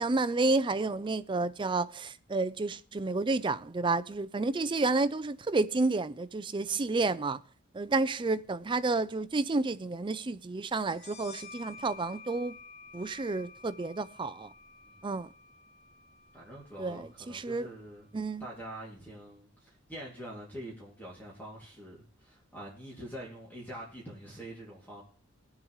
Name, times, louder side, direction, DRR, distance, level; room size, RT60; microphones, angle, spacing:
voice 1, 0.0-7.4 7.7-12.6 12.9-14.5 15.0-15.3 16.8-17.7 18.1-18.4, right 3 dB, 25° right, 0.4 m, -30 dB
sound 1, 10.9-18.2, left 4 dB, 80° left, 2.5 m, -52 dB
voice 2, 16.3-18.1 18.4-25.0, right 1 dB, 10° left, 2.4 m, -45 dB
19.5 x 7.4 x 3.1 m
head